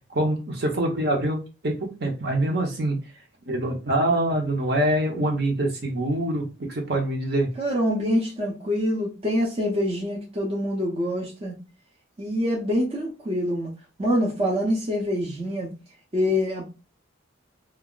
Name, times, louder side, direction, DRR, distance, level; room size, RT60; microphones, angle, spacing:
voice 1, 0.1-3.0 3.5-7.5, right 1 dB, 55° right, 0.8 m, -25 dB
voice 2, 7.6-11.5 12.2-13.7 14.0-15.7 16.1-16.7, equal, 30° right, 0.6 m, -25 dB
2.3 x 2.1 x 3.7 m
head